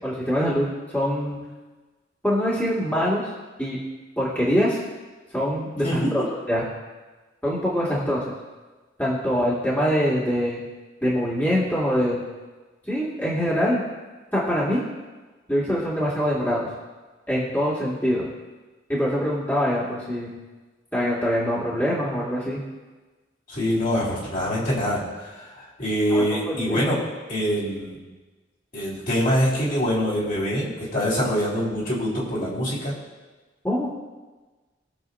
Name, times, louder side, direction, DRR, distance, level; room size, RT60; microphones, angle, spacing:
voice 1, 0.0-1.4 2.2-3.2 3.6-3.8 4.2-4.8 5.3-6.6 7.4-8.3 9.0-10.6 11.0-12.2 12.9-13.8 14.3-14.8 15.5-16.7 17.3-18.3 18.9-20.3 20.9-22.6 26.1-26.8 33.6-33.9, equal, 10° left, -8 dB, 2.3 m, -24 dB
voice 2, 5.8-6.3 23.5-27.0 27.3-28.0 28.7-32.9, equal, 45° left, -7 dB, 4.0 m, -24 dB
22.0 x 7.5 x 2.7 m, 1.3 s
head